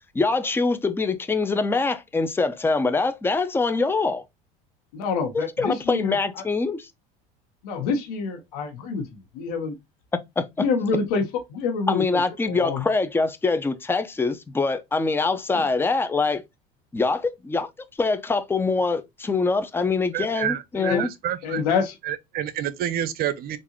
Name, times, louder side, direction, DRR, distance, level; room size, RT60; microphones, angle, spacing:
voice 1, 0.1-4.2 5.3-6.9 10.4-10.7 11.9-16.4 16.9-17.7 18.0-21.1, left 3 dB, 10° left, 0.5 m, -24 dB
voice 2, 4.9-6.1 7.6-9.1 9.3-9.7 10.6-11.2 11.5-12.2 12.5-12.9 20.7-21.0 21.4-21.9, left 5 dB, 85° left, 1.2 m, -26 dB
voice 3, 20.1-21.6 22.0-23.6, right 10 dB, 55° right, 0.6 m, -29 dB
3.7 x 2.6 x 3.0 m
supercardioid pair, 90°, 19 cm